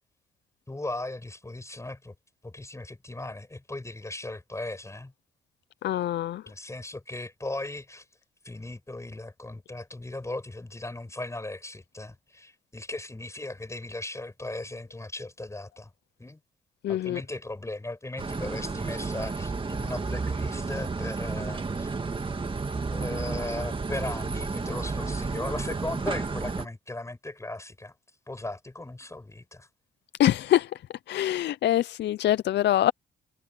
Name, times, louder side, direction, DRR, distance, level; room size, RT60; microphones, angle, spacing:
voice 1, 0.7-2.1 2.4-5.1 6.5-8.0 8.4-15.9 16.2-16.4 16.9-21.9 22.9-27.9 28.3-29.7, left 2 dB, 15° left, 6.4 m, -37 dB
voice 2, 5.8-6.4 16.8-17.2 30.2-30.8 31.1-32.9, left 12 dB, 60° left, 0.5 m, -24 dB
sound 1, 18.2-26.7, right 4 dB, 25° right, 2.3 m, -32 dB
cardioid pair, 90°, 20 cm